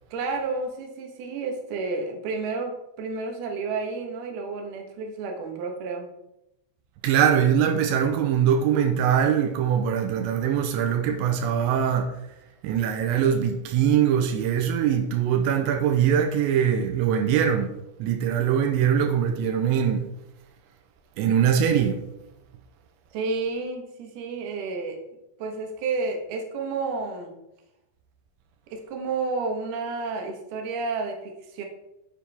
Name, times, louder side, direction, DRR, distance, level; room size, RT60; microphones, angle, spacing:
voice 1, 0.1-6.1 23.1-25.0 25.4-27.3 28.7-31.7, right 4 dB, 65° right, 3.1 m, -31 dB
voice 2, 7.0-12.1 12.6-17.7 18.0-20.1 21.2-22.0, right 8 dB, 90° right, 3.1 m, -22 dB
10.0 x 7.3 x 3.6 m
omnidirectional pair, 5.1 m